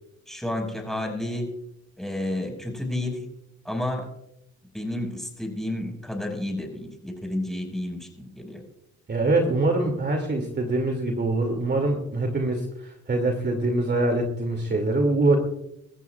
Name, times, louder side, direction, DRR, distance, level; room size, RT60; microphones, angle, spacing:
voice 1, 0.3-1.5 2.0-3.3 3.6-4.1 4.7-8.6, left 1 dB, ahead, 2 dB, 5.4 m, -31 dB
voice 2, 9.1-15.4, right 2 dB, 35° right, 3 dB, 2.5 m, -24 dB
25.0 x 14.0 x 2.4 m, 0.79 s
cardioid pair, 90°, 30 cm